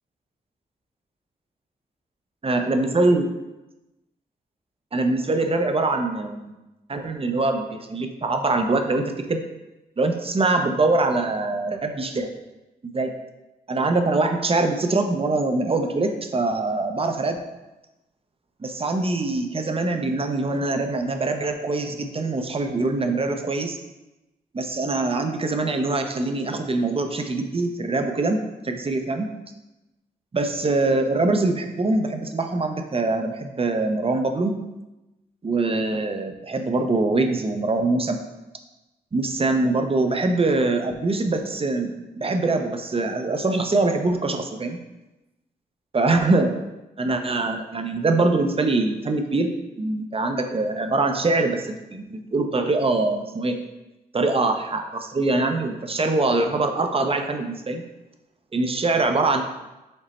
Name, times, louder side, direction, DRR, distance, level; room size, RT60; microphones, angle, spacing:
voice 1, 2.4-3.3 4.9-6.5 6.9-9.0 9.3-9.4 10.0-12.3 12.8-13.1 13.7-17.4 18.6-23.8 24.5-29.3 30.3-34.5 35.4-38.2 39.1-44.8 45.9-46.5 47.0-49.5 49.8-53.6 54.1-57.8 58.5-59.4, right 2 dB, 30° right, 5 dB, 0.6 m, -23 dB
5.2 x 2.0 x 4.1 m, 1.0 s
supercardioid pair, 40°, 18 cm